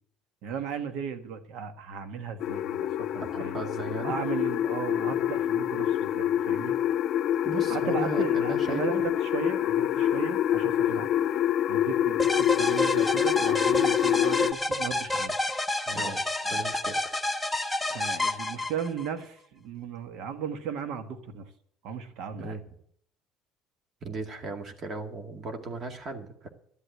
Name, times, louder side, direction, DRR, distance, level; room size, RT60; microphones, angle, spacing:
voice 1, 0.4-2.9 3.1-3.6 4.0-6.8 7.7-11.1 11.7-15.3 15.9-16.7 17.9-21.5 21.8-22.6, right 7 dB, 70° right, 9 dB, 1.5 m, -36 dB
sound 1, 2.4-14.5, left 11 dB, 60° left, 0.6 m, -26 dB
voice 2, 3.2-4.1 7.4-9.0 10.9-11.0 15.9-16.2 16.5-17.1 22.4-22.6 24.0-26.5, right 3 dB, 40° right, 5 dB, 2.1 m, -36 dB
sound 2, 12.2-19.1, left 1 dB, 5° left, 1.2 m, -29 dB
12.5 x 8.2 x 8.0 m, 0.64 s
supercardioid pair, 95°, 0 cm